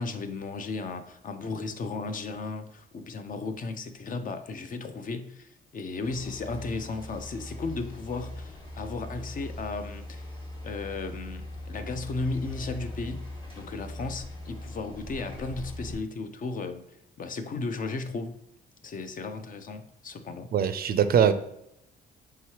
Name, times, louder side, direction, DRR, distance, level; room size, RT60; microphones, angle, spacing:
voice 1, 0.0-10.3 10.6-13.3 13.6-16.8 17.2-18.3 18.8-20.5, left 3 dB, 45° left, 9 dB, 0.5 m, -35 dB
sound 1, 6.0-16.0, left 1 dB, 25° left, 1.3 m, -40 dB
voice 2, 20.5-21.3, right 8 dB, 50° right, 11 dB, 0.4 m, -22 dB
4.7 x 3.0 x 2.9 m, 0.80 s
cardioid pair, 90°, 20 cm